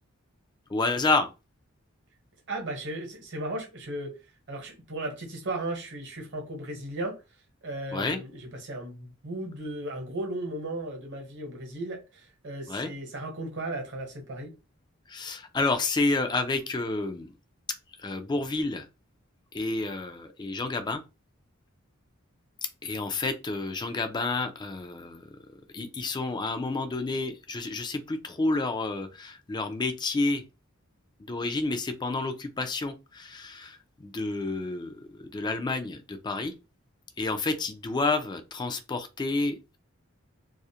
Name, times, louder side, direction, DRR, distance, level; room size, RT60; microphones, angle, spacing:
voice 1, 0.7-1.3 7.9-8.2 12.7-12.9 15.1-17.3 18.0-18.9 19.5-21.0 22.8-25.3 25.7-30.4 31.3-36.5 37.2-39.8, left 3 dB, 20° left, 0.3 m, -30 dB
voice 2, 2.5-4.2 4.5-7.2 7.6-14.5, right 1 dB, 60° right, 0.9 m, -36 dB
2.4 x 2.0 x 2.7 m
head